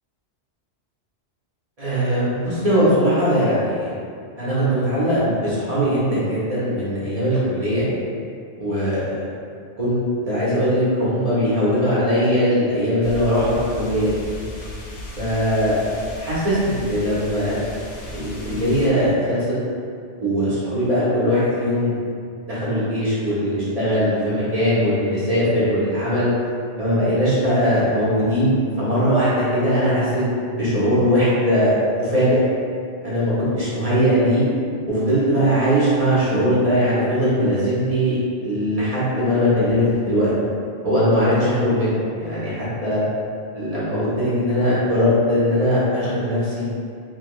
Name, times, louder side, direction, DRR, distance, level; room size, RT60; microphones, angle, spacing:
voice 1, 1.8-3.9 4.4-7.8 8.6-9.3 9.8-14.2 15.2-15.8 16.2-17.6 18.1-19.5 20.2-22.1 22.5-26.3 26.8-32.4 33.0-34.4 34.9-40.3 40.8-43.0 43.5-46.6, equal, 35° right, -10 dB, 0.8 m, -20 dB
sound 1, 13.0-18.9, left 1 dB, 90° left, 0.9 m, -35 dB
2.9 x 2.2 x 3.0 m, 2.3 s
omnidirectional pair, 1.2 m